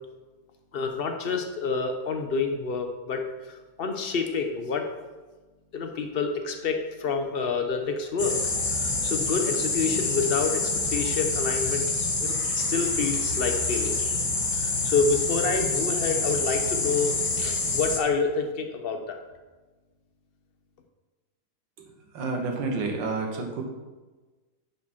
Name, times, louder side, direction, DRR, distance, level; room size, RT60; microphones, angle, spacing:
voice 1, 0.7-4.9 5.7-8.4 8.7-11.8 12.2-14.0 14.6-19.2, left 4 dB, 75° left, 5 dB, 0.5 m, -28 dB
sound 1, 8.2-18.0, left 3 dB, 30° left, 0.6 m, -27 dB
voice 2, 22.1-23.6, right 3 dB, 85° right, 2 dB, 2.0 m, -29 dB
10.5 x 5.0 x 4.3 m, 1.2 s
omnidirectional pair, 2.0 m